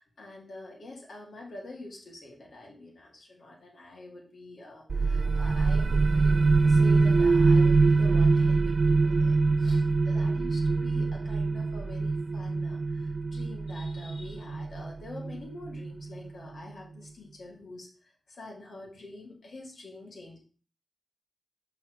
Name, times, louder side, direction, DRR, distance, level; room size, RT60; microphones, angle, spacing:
voice 1, 0.0-6.4 6.7-20.4, left 2 dB, 75° left, -1 dB, 2.1 m, -46 dB
sound 1, 4.9-16.3, right 3 dB, 60° right, 0.3 m, -24 dB
6.0 x 4.0 x 4.5 m, 0.40 s
cardioid pair, 50°, 0 cm